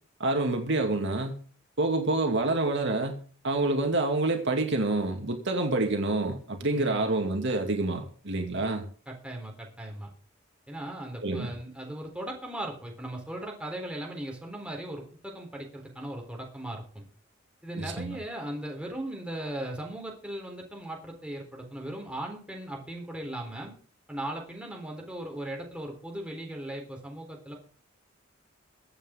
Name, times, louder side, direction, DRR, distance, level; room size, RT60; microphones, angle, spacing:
voice 1, 0.2-1.4 1.8-8.8 11.2-11.5 17.8-18.2, right 2 dB, 60° right, 3 dB, 2.5 m, -27 dB
voice 2, 6.7-7.2 9.1-10.1 10.7-17.0 17.6-23.7 24.1-27.6, right 1 dB, 5° right, 0 dB, 3.9 m, -38 dB
23.0 x 8.4 x 3.8 m, 0.40 s
head